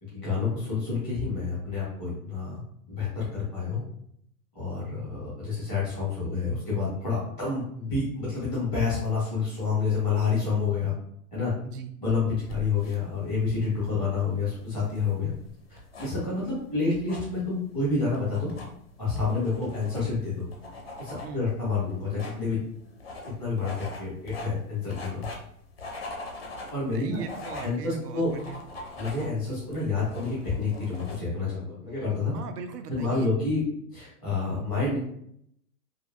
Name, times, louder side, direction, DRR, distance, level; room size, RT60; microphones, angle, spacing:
voice 1, 0.0-2.6 2.9-3.8 4.5-10.9 11.3-11.5 12.0-15.3 15.7-18.5 19.0-20.5 21.0-22.6 23.4-25.3 26.7-27.2 27.6-28.3 29.0-32.3 32.9-33.6 33.9-35.0, left 4 dB, 5° right, -9 dB, 0.6 m, -28 dB
sound 1, 12.3-31.2, left 2 dB, 45° left, 0.4 m, -43 dB
voice 2, 26.9-28.6 32.3-33.3, right 6 dB, 80° right, 7 dB, 0.6 m, -39 dB
2.7 x 2.6 x 2.4 m, 0.71 s
hypercardioid pair, 180°, 47 cm